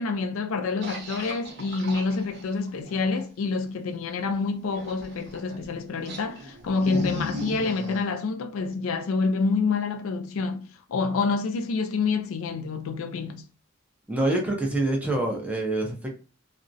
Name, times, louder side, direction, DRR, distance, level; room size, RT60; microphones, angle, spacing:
voice 1, 0.0-13.4, left 4 dB, 85° left, 0.4 m, -27 dB
sound 1, 0.8-3.2 4.7-5.6 6.0-8.0, equal, 55° right, 0.8 m, -37 dB
voice 2, 14.1-16.2, right 2 dB, 5° right, 0.5 m, -26 dB
2.4 x 2.0 x 2.5 m
head